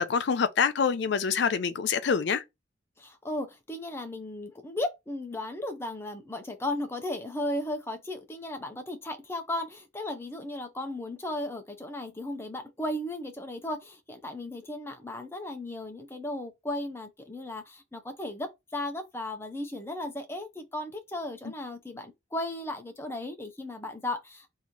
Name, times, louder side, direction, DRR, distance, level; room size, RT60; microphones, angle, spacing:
voice 1, 0.0-2.4, left 6 dB, 65° left, 0.4 m, -26 dB
voice 2, 3.0-24.5, left 1 dB, 15° left, 0.6 m, -35 dB
3.0 x 2.7 x 3.7 m
head